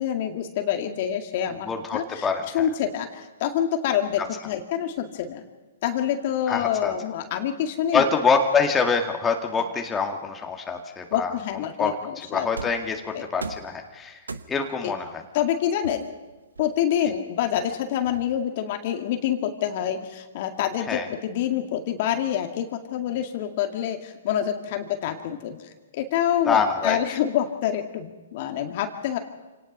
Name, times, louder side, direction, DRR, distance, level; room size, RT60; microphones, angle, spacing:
voice 1, 0.0-2.3 2.5-5.4 5.8-8.0 11.1-12.5 13.1-13.3 14.8-14.9 15.3-16.0 16.6-29.2, left 10 dB, 50° left, 5 dB, 2.0 m, -27 dB
voice 2, 1.7-2.7 4.2-4.3 6.5-6.9 7.9-11.3 11.8-14.2 14.5-15.2 20.9-21.1 26.5-27.0, left 5 dB, 15° left, 3 dB, 2.2 m, -25 dB
sound 1, 12.6-12.9 13.4-13.8 14.3-14.8 15.8-17.0 17.5-18.6, right 4 dB, 85° right, 1.1 m, -38 dB
27.0 x 18.5 x 5.5 m, 1.2 s
hypercardioid pair, 125°, 0 cm